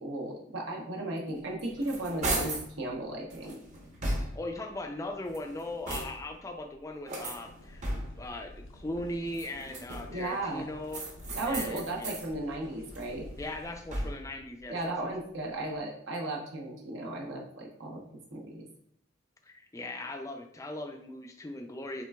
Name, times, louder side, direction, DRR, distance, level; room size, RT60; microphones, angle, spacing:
voice 1, 0.0-3.6 10.1-10.7 11.4-13.3 14.7-18.0 18.3-18.6, right 2 dB, 70° right, -1 dB, 0.8 m, -35 dB
sound 1, 1.4-2.7 3.3-4.6 5.2-6.4 7.1-8.3 9.2-10.3 10.9-12.3 12.7-14.4, right 1 dB, 35° right, 0.8 m, -36 dB
voice 2, 4.3-7.8 8.2-11.1 11.4-12.1 13.4-15.1 19.4-22.1, left 1 dB, 15° left, 4 dB, 0.4 m, -39 dB
sound 2, 7.5-14.0, left 1 dB, 85° left, 0.5 m, -49 dB
sound 3, 7.8-8.6 8.9-10.9 11.2-12.0 12.6-13.6 13.9-14.4, equal, 50° right, 1.7 m, -57 dB
5.8 x 3.3 x 2.3 m, 0.70 s
head